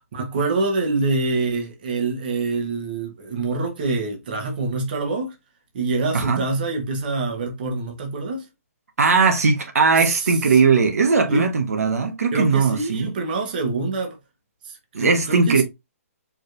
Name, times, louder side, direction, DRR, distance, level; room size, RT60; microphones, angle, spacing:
voice 1, 0.1-5.4 5.7-8.4 10.0-10.6 11.3-11.5 12.3-14.2 14.6-15.6, right 3 dB, 35° right, 1.3 m, -25 dB
voice 2, 9.0-13.1 14.9-15.6, right 4 dB, 70° right, 1.2 m, -19 dB
4.8 x 3.2 x 2.6 m
hypercardioid pair, 170°, 8 cm